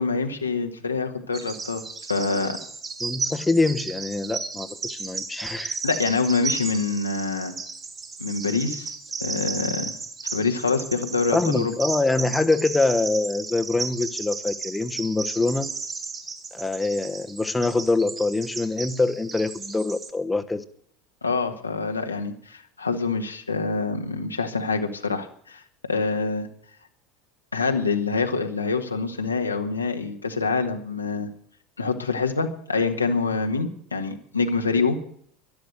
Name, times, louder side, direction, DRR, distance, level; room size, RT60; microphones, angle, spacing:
voice 1, 0.0-2.6 5.8-7.5 8.2-8.9 9.2-9.9 10.3-11.7 21.2-26.5 27.5-31.3 31.8-35.0, left 4 dB, 90° left, 4 dB, 1.6 m, -26 dB
Bird vocalization bird call bird song, 1.3-20.1, right 4 dB, 30° right, 2.8 m, -34 dB
voice 2, 3.0-5.8 11.3-15.7 16.5-20.6, left 3 dB, 10° left, 9 dB, 1.1 m, -24 dB
12.0 x 12.0 x 8.0 m, 0.62 s
figure-of-eight pair, 75°, 0 cm